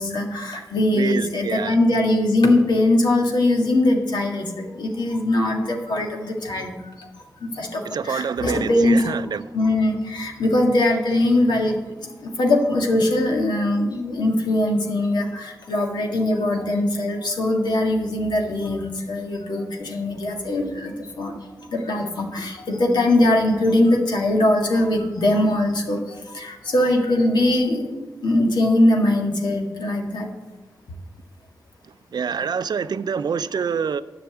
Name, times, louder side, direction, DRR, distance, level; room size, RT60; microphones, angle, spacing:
voice 1, 0.0-7.1 7.4-9.1 9.5-30.3, left 1 dB, 85° left, 1 dB, 1.8 m, -21 dB
voice 2, 0.9-1.8 7.8-9.5 31.8-34.0, right 6 dB, 70° right, 14 dB, 0.5 m, -26 dB
10.5 x 5.9 x 7.9 m, 1.2 s
cardioid pair, 60°, 7 cm